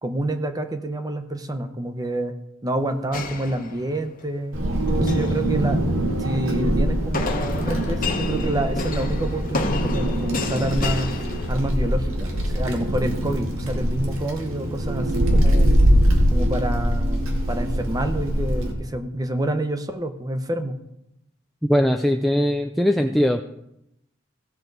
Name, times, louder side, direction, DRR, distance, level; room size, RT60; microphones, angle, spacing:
voice 1, 0.0-2.3 2.6-5.8 6.2-11.1 11.5-15.8 16.3-20.8, right 1 dB, 20° right, 8 dB, 0.8 m, -28 dB
sound 1, 3.1-4.2 4.9-5.4 7.1-12.0, left 3 dB, 45° left, 1.0 m, -30 dB
Wind, 4.5-18.7, equal, 80° right, 1.8 m, -22 dB
voice 2, 21.7-23.4, equal, ahead, 4 dB, 0.3 m, -20 dB
16.5 x 6.1 x 4.0 m, 0.83 s
head